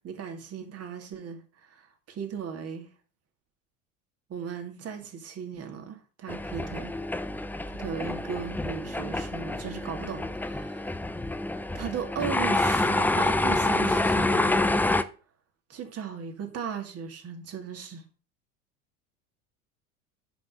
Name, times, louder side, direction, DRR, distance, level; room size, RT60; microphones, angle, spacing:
voice 1, 0.0-2.9 4.3-7.0 7.7-11.1 11.7-14.8 15.7-18.0, right 7 dB, 40° right, 2.6 m, -37 dB
sound 1, 6.3-15.0, left 2 dB, 5° left, 0.5 m, -27 dB
10.0 x 5.8 x 5.5 m
figure-of-eight pair, 75°, 39 cm